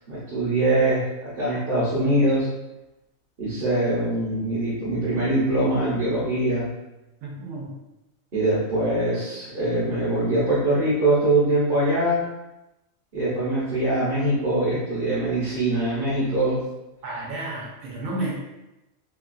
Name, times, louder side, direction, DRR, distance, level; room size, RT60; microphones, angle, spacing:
voice 1, 0.1-2.5 3.4-6.7 8.3-12.2 13.1-16.6, right 1 dB, 45° right, -9 dB, 0.8 m, -23 dB
voice 2, 7.2-7.7 17.0-18.3, right 2 dB, 80° right, -4 dB, 1.1 m, -31 dB
3.0 x 2.2 x 2.4 m, 0.96 s
omnidirectional pair, 1.4 m